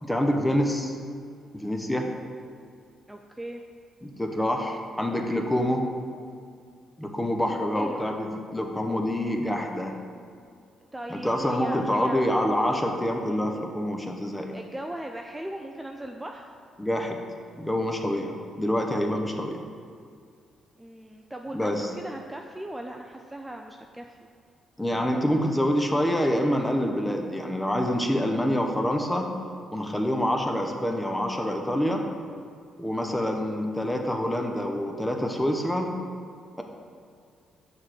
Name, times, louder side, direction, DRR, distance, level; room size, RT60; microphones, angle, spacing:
voice 1, 0.0-1.0 1.5-2.1 4.0-5.8 7.0-10.0 11.1-14.5 16.8-17.2 17.6-19.6 21.5-21.9 24.8-29.3 29.7-32.0 32.8-35.9, equal, 10° left, 3 dB, 1.0 m, -26 dB
voice 2, 3.1-3.6 7.7-8.0 10.9-12.2 12.6-12.9 14.5-16.5 20.8-24.3, right 1 dB, 15° right, 3 dB, 0.5 m, -38 dB
6.3 x 3.8 x 6.1 m, 2.3 s
hypercardioid pair, 50°, 0 cm